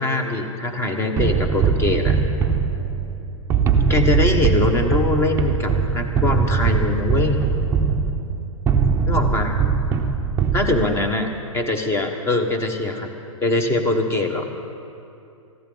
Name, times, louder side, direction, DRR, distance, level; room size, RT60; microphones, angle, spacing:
voice 1, 0.0-2.2 3.9-7.4 9.1-9.6 10.5-11.3 11.5-13.1 13.4-14.4, left 2 dB, 15° left, 5 dB, 1.2 m, -22 dB
sound 1, 1.2-11.1, right 6 dB, 15° right, 0.7 m, -21 dB
19.5 x 14.5 x 3.9 m, 2.6 s
hypercardioid pair, 140°, 17 cm